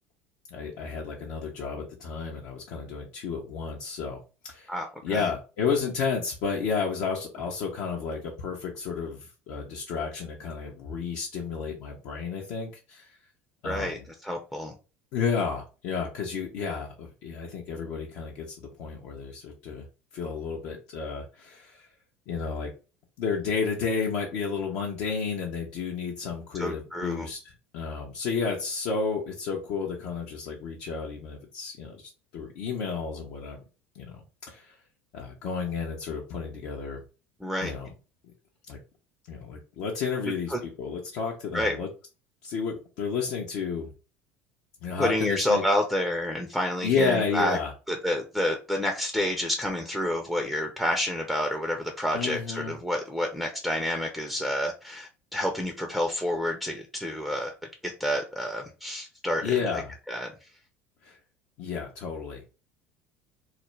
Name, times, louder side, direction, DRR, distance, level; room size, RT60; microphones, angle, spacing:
voice 1, 0.5-4.2 4.5-4.7 5.0-13.2 13.6-14.0 15.1-19.9 20.1-21.9 22.3-22.7 23.2-33.6 33.9-34.8 35.1-37.0 37.6-37.9 38.7-38.8 39.3-41.9 42.4-43.9 44.8-45.6 46.8-47.7 52.1-52.7 59.4-59.9 61.0-61.2 61.6-62.4, left 5 dB, 60° left, -1 dB, 0.6 m, -31 dB
voice 2, 4.7-5.3 13.6-14.7 26.6-27.3 37.4-37.7 40.5-40.6 41.5-41.8 45.0-47.6 47.9-57.5 58.0-59.6 60.1-60.3, left 1 dB, ahead, 2 dB, 0.5 m, -29 dB
2.4 x 2.1 x 3.1 m, 0.33 s
hypercardioid pair, 75°, 7 cm